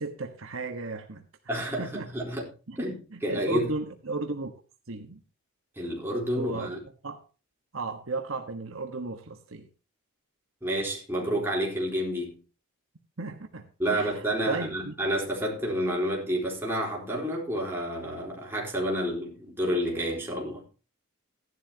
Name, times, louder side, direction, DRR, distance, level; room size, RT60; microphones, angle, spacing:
voice 1, 0.0-2.1 2.7-2.8 3.1-4.5 4.9-5.2 6.4-6.7 7.0-7.2 7.7-9.7 13.2-14.9, right 3 dB, 65° right, 1.3 m, -35 dB
voice 2, 1.5-2.4 2.8-3.7 5.8-6.8 10.6-12.4 13.8-20.6, equal, 10° right, 3.9 m, -29 dB
15.5 x 11.5 x 2.9 m
head